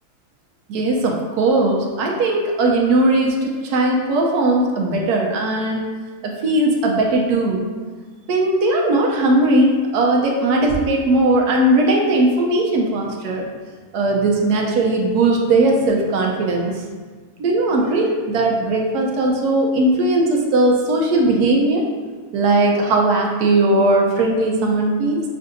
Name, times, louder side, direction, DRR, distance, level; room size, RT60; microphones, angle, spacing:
voice 1, 0.7-5.9 6.2-7.6 8.3-13.4 13.9-16.8 17.4-21.9 22.3-25.2, right 2 dB, 80° right, 0 dB, 1.2 m, -18 dB
6.5 x 2.6 x 2.5 m, 1.4 s
omnidirectional pair, 1.6 m